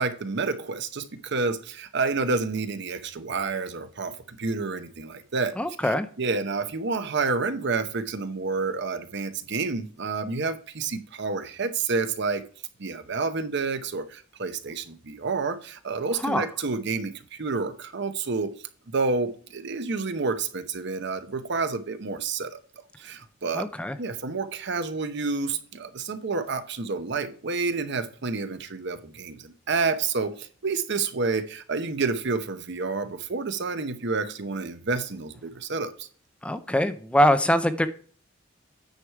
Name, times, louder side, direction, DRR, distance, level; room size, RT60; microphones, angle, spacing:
voice 1, 0.0-5.6 5.8-12.4 12.8-18.5 18.9-22.6 23.0-23.7 24.0-36.1, right 4 dB, 60° right, 0.9 m, -29 dB
voice 2, 5.6-6.1 16.2-16.5 23.5-24.0 36.4-37.9, equal, 5° left, 0.4 m, -23 dB
9.4 x 4.8 x 4.6 m
head